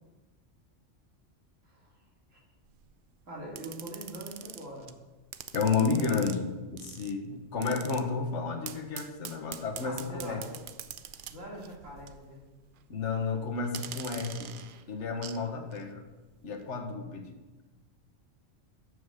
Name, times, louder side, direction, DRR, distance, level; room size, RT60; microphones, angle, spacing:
sound 1, 2.7-2.9 3.5-4.9 5.3-6.4 6.8-7.1 7.6-8.0 8.6-12.3 12.6-12.8 13.6-15.4 15.7-15.8, right 9 dB, 60° right, 0.5 m, -44 dB
voice 1, 3.3-4.9 9.8-10.6 11.3-12.4, right 1 dB, 80° right, -4 dB, 3.1 m, -43 dB
voice 2, 5.5-10.4 12.9-14.5 14.9-16.0 16.4-17.3, left 5 dB, 65° left, 5 dB, 1.4 m, -31 dB
8.0 x 7.1 x 6.4 m, 1.2 s
omnidirectional pair, 1.3 m